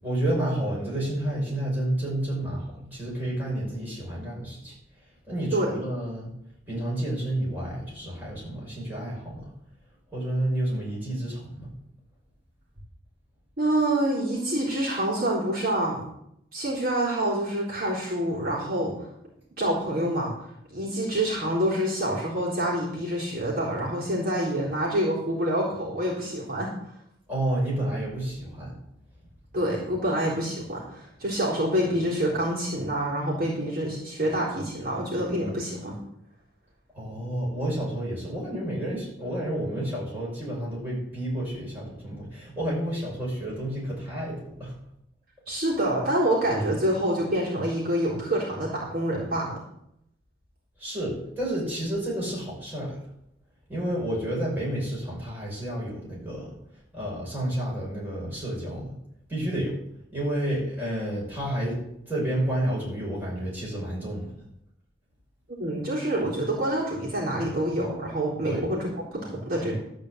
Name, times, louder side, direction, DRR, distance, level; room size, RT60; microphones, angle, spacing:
voice 1, 0.0-4.7 5.3-6.3 6.7-9.5 10.1-11.7 27.3-28.7 36.9-44.7 50.8-53.0 53.7-56.5 56.9-58.9 59.3-59.8 60.1-61.8 62.1-64.3 68.5-68.7, right 1 dB, 10° right, -6 dB, 5.7 m, -30 dB
voice 2, 13.6-16.0 16.5-18.9 19.6-20.3 20.7-26.7 29.5-36.0 45.5-49.6 65.6-69.8, right 1 dB, 55° right, -5 dB, 3.7 m, -27 dB
12.5 x 5.1 x 8.0 m, 0.76 s
head